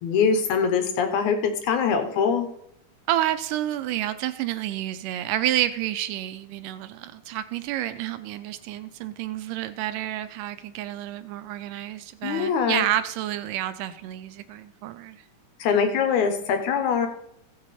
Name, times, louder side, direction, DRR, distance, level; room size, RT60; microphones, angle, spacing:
voice 1, 0.0-2.5 12.2-12.8 15.6-17.1, left 6 dB, 70° left, 6 dB, 2.3 m, -23 dB
voice 2, 3.1-15.2, right 13 dB, 85° right, 12 dB, 2.2 m, -29 dB
16.5 x 6.4 x 4.2 m, 0.77 s
omnidirectional pair, 3.8 m